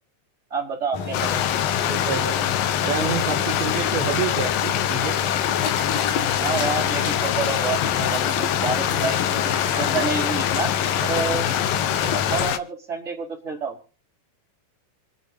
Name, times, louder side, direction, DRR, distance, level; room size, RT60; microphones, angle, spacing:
voice 1, 0.5-1.4 6.4-10.7 11.0-11.4 12.0-13.8, right 5 dB, 15° right, -3 dB, 5.1 m, -29 dB
sound 1, 0.9-12.5, left 5 dB, 55° left, 3.5 m, -30 dB
Stream, 1.1-12.6, left 11 dB, 85° left, 1.9 m, -24 dB
voice 2, 1.8-2.4 2.8-5.2, right 8 dB, 65° right, 3 dB, 2.7 m, -28 dB
27.0 x 9.7 x 2.9 m, 0.39 s
omnidirectional pair, 5.3 m